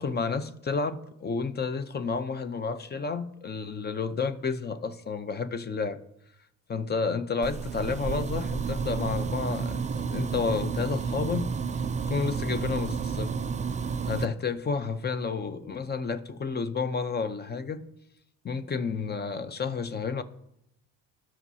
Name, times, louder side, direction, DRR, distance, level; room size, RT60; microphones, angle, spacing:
voice 1, 0.0-6.0 6.7-11.5 12.1-13.3 14.1-17.8 18.4-20.2, left 5 dB, 25° left, 12 dB, 0.7 m, -31 dB
sound 1, 7.4-14.2, right 5 dB, 20° right, 0.3 m, -31 dB
18.5 x 6.3 x 2.8 m, 0.80 s
cardioid pair, 110°, 38 cm